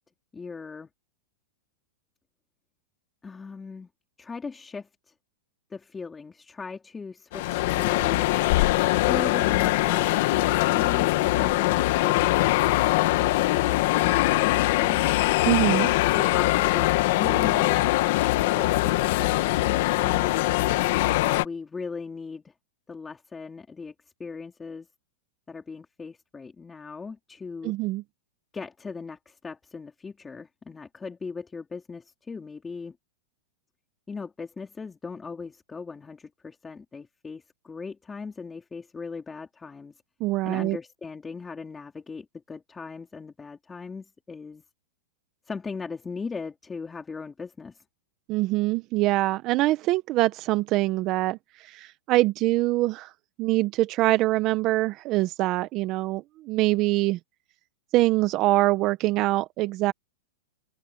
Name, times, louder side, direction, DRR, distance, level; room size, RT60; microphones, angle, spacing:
voice 1, 0.3-0.9 3.2-3.9 4.2-5.1 5.7-8.3 9.0-12.4 13.1-15.0 16.1-17.9 21.3-22.5 22.9-23.9 24.2-24.9 25.5-27.7 28.5-33.0 34.1-39.9 40.4-44.6 45.5-47.8, left 4 dB, 15° left, 3.8 m, -39 dB
sound 1, 7.3-21.4, left 18 dB, 60° left, 1.7 m, -22 dB
voice 2, 15.4-15.9 27.6-28.0 40.2-40.8 48.3-53.1 53.4-57.2 57.9-59.9, right 18 dB, 40° right, 1.0 m, -24 dB
hypercardioid pair, 135°, 0 cm